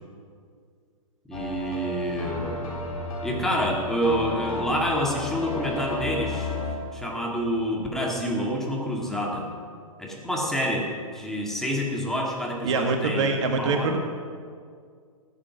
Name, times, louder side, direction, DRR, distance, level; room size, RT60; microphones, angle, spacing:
sound 1, 1.3-6.7, left 3 dB, 75° left, 3.7 m, -32 dB
voice 1, 1.3-2.6 3.2-6.5 6.9-9.5 10.0-13.9, equal, ahead, -2 dB, 2.3 m, -28 dB
voice 2, 12.6-14.0, right 3 dB, 55° right, 5 dB, 1.6 m, -24 dB
15.5 x 8.9 x 6.2 m, 2.1 s
figure-of-eight pair, 120°, 18 cm